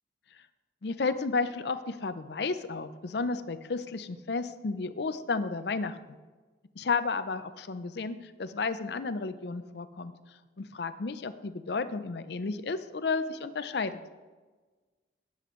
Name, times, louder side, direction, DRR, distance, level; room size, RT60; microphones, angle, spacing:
voice 1, 0.8-6.0 6.8-10.1 10.6-14.0, left 4 dB, 65° left, 12 dB, 0.5 m, -32 dB
12.5 x 9.6 x 3.1 m, 1.3 s
head